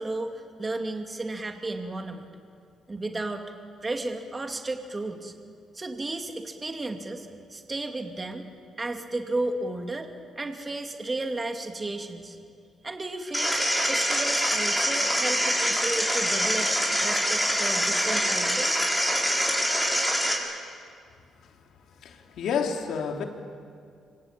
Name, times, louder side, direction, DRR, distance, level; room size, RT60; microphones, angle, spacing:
voice 1, 0.0-2.2 2.9-3.4 3.8-5.3 5.7-8.5 8.8-10.1 10.4-12.4 12.8-13.6 13.8-16.7 17.0-18.9, right 2 dB, 25° right, 2.6 m, -33 dB
sound 1, 13.3-20.3, equal, ahead, 6.9 m, -25 dB
voice 2, 21.9-23.2, left 6 dB, 75° left, 3.1 m, -30 dB
26.0 x 25.5 x 9.1 m
cardioid pair, 90°, 0 cm